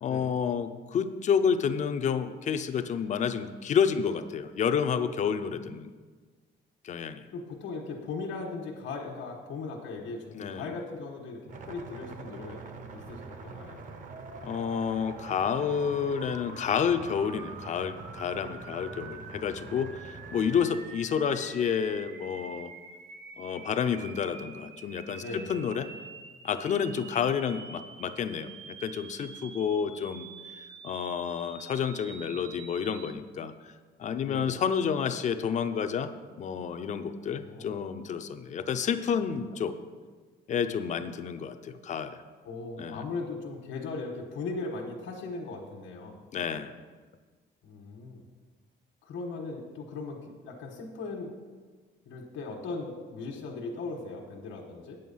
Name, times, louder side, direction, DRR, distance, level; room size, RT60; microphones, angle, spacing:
voice 1, 0.0-5.9 6.8-7.3 10.3-10.7 14.4-22.7 23.4-25.2 25.5-25.9 26.4-30.3 30.5-33.7 34.0-36.1 36.4-39.7 40.5-42.2 42.8-43.0 46.3-46.7, left 7 dB, 40° left, 10 dB, 0.5 m, -30 dB
voice 2, 7.3-11.4 11.7-12.6 12.9-13.8 19.2-19.4 25.2-25.6 34.2-34.6 37.3-37.8 42.4-46.2 47.6-48.2 49.0-51.3 52.0-55.0, left 3 dB, 75° left, -1 dB, 1.4 m, -38 dB
sound 1, 11.5-20.8, right 3 dB, 45° right, 0.8 m, -45 dB
sound 2, 14.1-33.1, right 5 dB, 85° right, 1.0 m, -47 dB
9.1 x 7.7 x 5.5 m, 1.5 s
cardioid pair, 175°, 19 cm